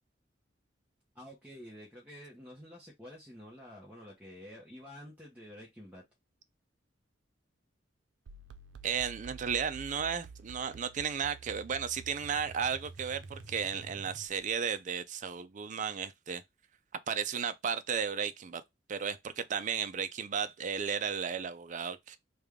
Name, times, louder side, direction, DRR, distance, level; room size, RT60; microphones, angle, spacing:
voice 1, 1.1-6.0, equal, 10° right, 0.9 m, -49 dB
sound 1, 8.3-14.6, right 4 dB, 90° right, 0.5 m, -49 dB
voice 2, 8.8-16.4 17.1-18.6 18.9-22.2, right 7 dB, 45° right, 0.4 m, -34 dB
3.4 x 2.3 x 3.5 m
head